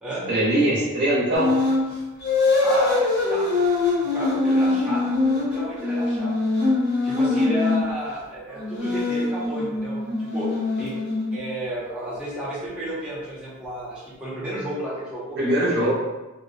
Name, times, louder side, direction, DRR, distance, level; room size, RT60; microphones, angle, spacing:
voice 1, 0.3-1.5 15.4-15.9, right 1 dB, 45° right, -6 dB, 0.7 m, -21 dB
sound 1, 1.3-1.8 2.2-7.9 8.6-11.5, left 3 dB, 50° left, 0.7 m, -23 dB
voice 2, 2.6-6.3 7.0-10.5 10.8-11.0 11.3-15.9, right 1 dB, 5° right, -9 dB, 0.5 m, -32 dB
2.5 x 2.0 x 2.5 m, 1.1 s
head